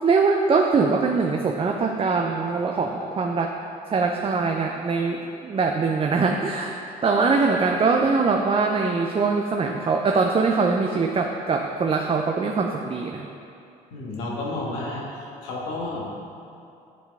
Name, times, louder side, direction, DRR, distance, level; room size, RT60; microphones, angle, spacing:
voice 1, 0.0-3.5 3.9-6.7 7.0-13.3, right 4 dB, 30° right, 2 dB, 0.5 m, -22 dB
voice 2, 13.9-15.0 15.4-16.1, left 2 dB, 80° left, -4 dB, 1.5 m, -31 dB
9.8 x 3.7 x 3.6 m, 2.6 s
supercardioid pair, 65°, 19 cm